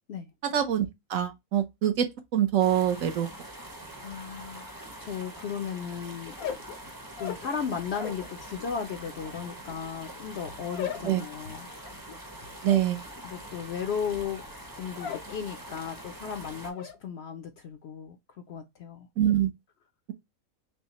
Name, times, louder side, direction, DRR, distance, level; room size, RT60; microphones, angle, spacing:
voice 1, 0.5-3.3 11.0-11.2 12.6-13.0 19.2-19.5, right 10 dB, 70° right, 1.1 m, -25 dB
sound 1, 2.6-16.7, right 1 dB, 20° right, 0.7 m, -44 dB
voice 2, 4.0-4.7 5.0-6.4 7.2-12.0 13.2-14.4 14.8-18.2 18.5-19.1, left 7 dB, 60° left, 0.7 m, -35 dB
sound 2, 6.3-8.3 8.6-15.4 15.7-16.2 16.5-17.0, left 8 dB, 80° left, 1.2 m, -40 dB
5.5 x 2.1 x 2.9 m
omnidirectional pair, 1.5 m